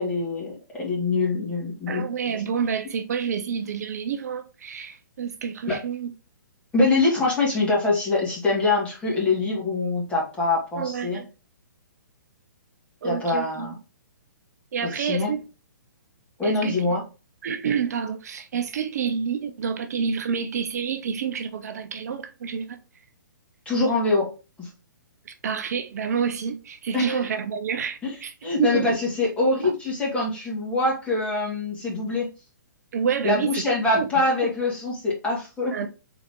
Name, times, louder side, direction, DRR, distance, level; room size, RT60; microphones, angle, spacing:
voice 1, 0.0-2.0 5.7-5.8 6.7-11.2 13.0-13.7 14.8-15.3 16.4-17.0 23.7-24.3 24.6-24.7 26.9-27.3 28.0-28.1 28.4-32.3 33.2-35.8, left 3 dB, 10° left, 1.8 m, -24 dB
voice 2, 1.9-6.1 10.7-11.3 13.0-13.7 14.7-15.4 16.4-16.8 17.4-22.8 25.3-29.0 29.6-29.7 32.9-33.6 34.0-34.1 35.7-35.9, right 7 dB, 55° right, 0.5 m, -28 dB
4.1 x 3.4 x 3.5 m
figure-of-eight pair, 125°, 11 cm